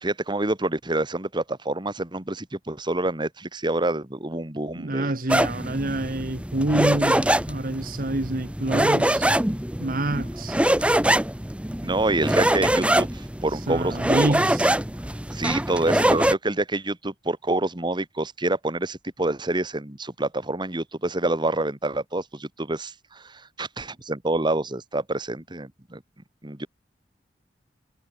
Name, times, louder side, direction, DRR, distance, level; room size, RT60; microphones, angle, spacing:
voice 1, 0.0-5.1 11.8-14.3 15.3-26.0 26.4-26.7, right 2 dB, 25° right, 1.9 m, -27 dB
voice 2, 4.8-9.3 9.8-10.6 13.7-14.7, right 1 dB, 55° right, 1.6 m, -27 dB
sound 1, 5.3-16.3, right 1 dB, 5° right, 1.1 m, -23 dB
head